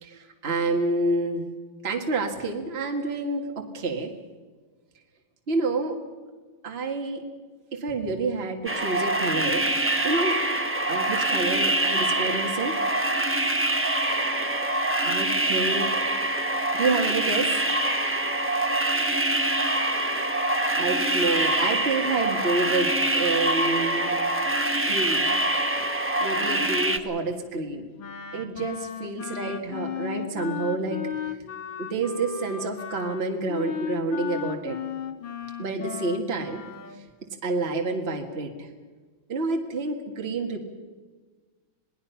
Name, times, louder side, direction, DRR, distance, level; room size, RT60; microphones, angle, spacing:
voice 1, 0.0-1.5 1.8-4.1 5.5-6.0 6.6-7.2 7.7-9.7 10.0-10.4 10.9-12.8 15.0-15.9 16.7-17.5 20.7-24.1 24.9-25.2 26.2-27.9 28.3-31.0 31.8-34.8 35.6-36.6 37.4-38.7 39.3-40.6, right 3 dB, 30° right, 3 dB, 1.9 m, -28 dB
sound 1, 8.7-27.0, right 1 dB, 10° right, 1.0 m, -25 dB
Wind instrument woodwind instrument, 28.0-37.0, left 8 dB, 80° left, 2.1 m, -35 dB
28.0 x 19.0 x 5.8 m, 1.4 s
omnidirectional pair, 2.1 m